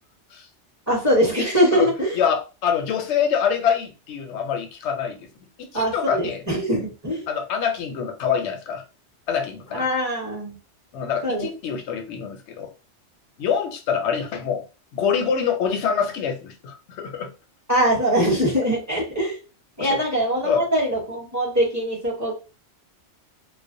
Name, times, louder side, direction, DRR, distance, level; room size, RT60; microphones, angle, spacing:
voice 1, 0.9-2.2 5.7-7.3 9.7-10.6 11.2-11.4 17.7-19.4 19.8-22.3, equal, 15° right, 0.9 m, -22 dB
voice 2, 2.1-5.3 5.6-6.4 7.3-8.8 9.3-9.9 10.9-12.7 13.4-14.7 14.9-17.3 19.8-20.0 20.4-20.6, left 7 dB, 75° left, 0.8 m, -25 dB
2.4 x 2.1 x 2.6 m
omnidirectional pair, 1.2 m